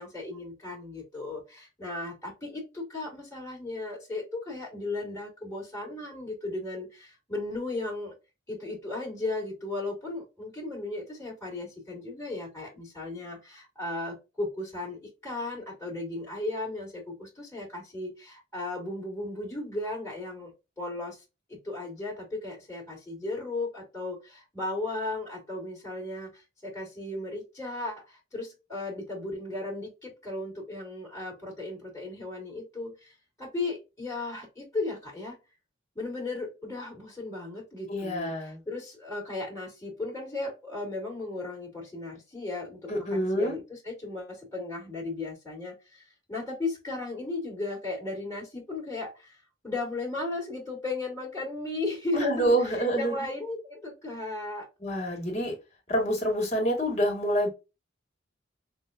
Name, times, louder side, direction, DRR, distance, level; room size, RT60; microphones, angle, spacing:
voice 1, 0.0-8.1 8.5-21.2 21.5-35.4 36.0-49.4 49.6-54.7, left 2 dB, 15° left, 2.1 m, -36 dB
voice 2, 37.9-38.6 42.9-43.6 52.1-53.3 54.8-55.6 55.9-57.5, right 1 dB, 35° left, 1.8 m, -27 dB
5.8 x 2.2 x 2.6 m
head